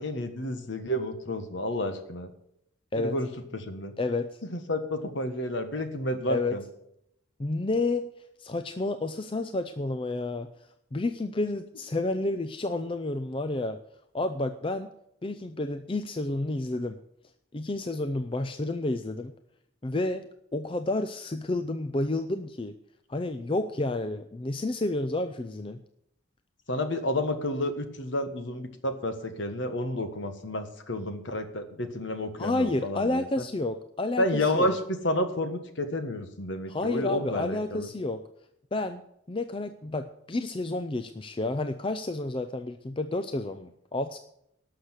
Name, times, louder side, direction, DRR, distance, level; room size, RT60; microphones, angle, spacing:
voice 1, 0.0-2.3 2.9-3.9 4.5-6.6 26.7-33.4 34.2-37.9, left 1 dB, 60° left, 8 dB, 1.5 m, -30 dB
voice 2, 4.0-4.3 6.3-6.6 7.4-8.1 8.4-10.5 10.9-13.8 14.1-14.9 15.2-17.0 17.5-19.3 19.8-20.3 20.5-22.7 23.1-25.8 32.4-34.7 36.7-38.2 38.7-39.0 39.3-44.2, left 2 dB, 25° left, 9 dB, 0.5 m, -30 dB
12.0 x 6.6 x 8.1 m, 0.76 s
head